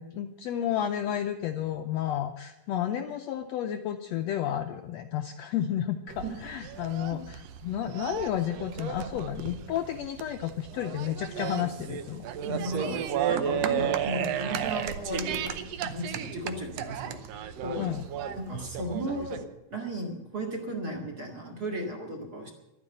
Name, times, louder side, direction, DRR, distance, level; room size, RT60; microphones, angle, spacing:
voice 1, 0.0-12.2 17.8-18.0, left 10 dB, 75° left, 6 dB, 1.6 m, -31 dB
sound 1, 6.1-19.4, right 9 dB, 70° right, 1.7 m, -34 dB
voice 2, 12.4-13.0 13.3-17.2 17.6-17.9 18.4-19.4 19.7-22.5, equal, 35° right, 0 dB, 2.2 m, -35 dB
12.0 x 9.5 x 9.0 m, 0.95 s
omnidirectional pair, 3.6 m